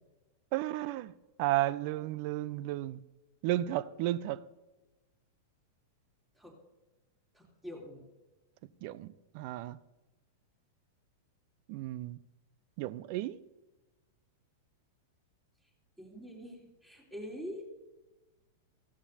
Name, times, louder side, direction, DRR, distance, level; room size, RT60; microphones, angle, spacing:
voice 1, 0.5-1.1 1.4-3.0 3.4-4.4 8.8-9.8 11.7-12.2 12.8-13.4, right 15 dB, 50° right, 0.5 m, -33 dB
voice 2, 7.3-8.0 16.0-17.7, equal, 10° right, 3.6 m, -44 dB
15.5 x 14.0 x 2.8 m
figure-of-eight pair, 95°, 0 cm